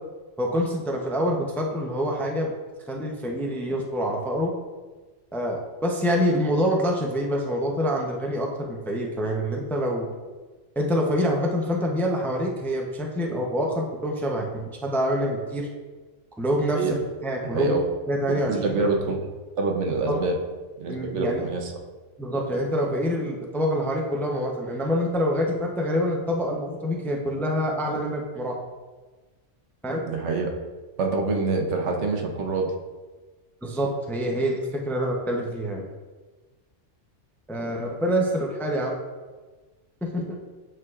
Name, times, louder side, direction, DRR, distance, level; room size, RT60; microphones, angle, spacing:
voice 1, 0.4-2.5 2.9-4.5 5.3-10.1 10.8-15.7 16.4-17.0 17.2-17.8 18.1-18.6 20.1-20.3 20.9-21.4 22.2-28.6 29.8-30.0 33.6-35.9 37.5-39.0 40.0-40.4, equal, 5° left, 0 dB, 0.3 m, -26 dB
voice 2, 17.5-17.8 18.3-19.2 19.6-20.4 20.8-21.7 30.1-30.5 31.0-32.7, right 3 dB, 70° right, 3 dB, 1.0 m, -26 dB
8.6 x 4.6 x 2.4 m, 1.3 s
omnidirectional pair, 1.3 m